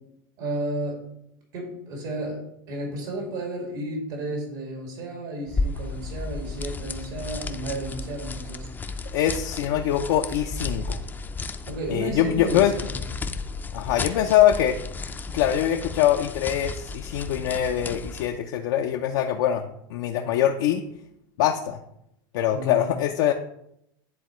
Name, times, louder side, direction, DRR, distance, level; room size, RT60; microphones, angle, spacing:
voice 1, 0.4-1.0 1.5-9.1 11.7-13.0 22.5-22.9, right 1 dB, 70° right, 0 dB, 2.3 m, -33 dB
sound 1, 5.5-18.4, left 3 dB, 15° left, 0.4 m, -33 dB
voice 2, 9.1-11.0 11.9-12.7 13.7-14.8 15.3-20.8 21.4-21.8 22.3-23.3, left 11 dB, 70° left, 3 dB, 0.5 m, -23 dB
10.5 x 3.7 x 3.1 m, 0.78 s
supercardioid pair, 115°, 11 cm